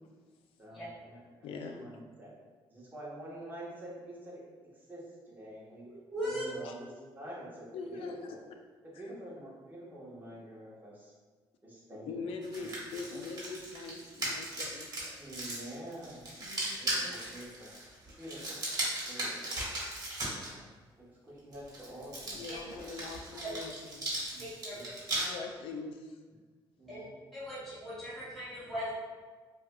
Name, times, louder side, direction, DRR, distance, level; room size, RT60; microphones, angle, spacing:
voice 1, 0.6-2.3 2.7-4.4 4.7-5.8 6.2-8.4 8.8-11.1 11.6-12.3 12.6-12.8 13.1-13.2 15.1-16.2 16.7-17.7 18.2-18.6 19.0-19.7 20.4-20.6 21.0-22.4 23.6-23.7 24.3-24.4 24.7-24.9 26.8-27.1, right 1 dB, 20° right, -6 dB, 1.1 m, -47 dB
voice 2, 1.4-1.8 6.6-6.7 7.7-8.2 8.9-9.0 12.0-15.2 16.4-16.6 22.3-24.1 25.2-26.2, left 4 dB, 85° left, 4 dB, 0.4 m, -42 dB
voice 3, 6.1-6.5 16.9-17.0 22.5-22.6 23.4-23.5 24.4-24.8 25.2-25.3 26.9-27.0 27.3-28.9, equal, ahead, -12 dB, 1.2 m, -39 dB
sound 1, 12.4-20.5 21.5-25.2, right 1 dB, 45° right, 1.3 m, -37 dB
4.7 x 2.4 x 2.2 m, 1.4 s
cardioid pair, 90°, 9 cm